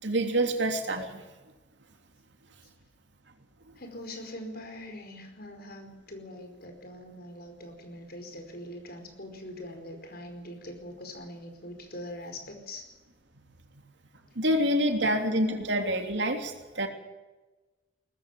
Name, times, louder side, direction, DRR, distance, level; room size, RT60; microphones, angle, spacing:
voice 1, 0.0-1.2 14.4-16.9, right 1 dB, 75° right, 5 dB, 3.2 m, -27 dB
voice 2, 3.8-12.8, left 1 dB, 55° left, 6 dB, 4.9 m, -43 dB
19.5 x 14.5 x 9.2 m, 1.2 s
head